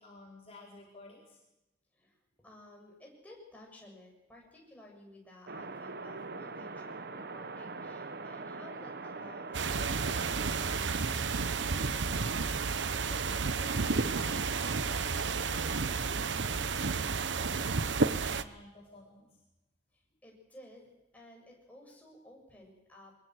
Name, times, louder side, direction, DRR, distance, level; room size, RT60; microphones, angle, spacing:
voice 1, 0.0-1.4 5.5-5.7 9.6-9.8 13.0-19.4, left 1 dB, 35° left, -3 dB, 4.8 m, -53 dB
voice 2, 1.9-12.7 19.9-23.1, left 1 dB, 10° left, -1 dB, 7.3 m, -55 dB
sound 1, 5.5-10.8, right 3 dB, 60° right, 1.2 m, -42 dB
sound 2, 9.5-18.4, right 4 dB, 90° right, 1.0 m, -31 dB
23.5 x 21.0 x 8.0 m, 0.95 s
head